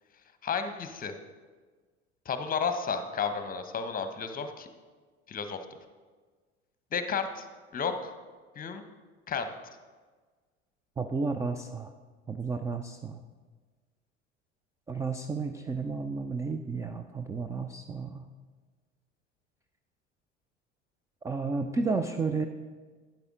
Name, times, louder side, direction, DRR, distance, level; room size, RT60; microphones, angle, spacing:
voice 1, 0.4-1.1 2.2-4.7 5.3-5.6 6.9-7.5 7.7-8.1 8.6-8.8 9.3-9.8, left 6 dB, 25° left, 9 dB, 1.0 m, -32 dB
voice 2, 11.0-11.9 12.3-13.2 14.9-18.3 21.2-22.5, right 4 dB, 10° right, 7 dB, 0.3 m, -32 dB
12.0 x 9.1 x 3.7 m, 1.4 s
figure-of-eight pair, 70°, 36 cm